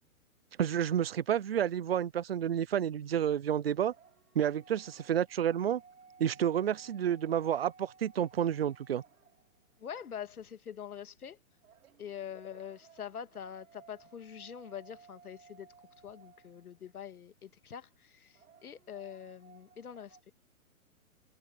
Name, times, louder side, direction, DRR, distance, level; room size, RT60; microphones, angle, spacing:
voice 1, 0.6-3.9 4.4-5.8 6.2-9.0, right 9 dB, 45° right, 0.4 m, -30 dB
sound 1, 3.7-9.8 11.6-16.9 18.3-20.2, right 5 dB, 75° right, 3.5 m, -59 dB
voice 2, 9.8-11.4 12.0-15.7 16.0-20.2, left 8 dB, 85° left, 2.1 m, -44 dB
hypercardioid pair, 170°, 43 cm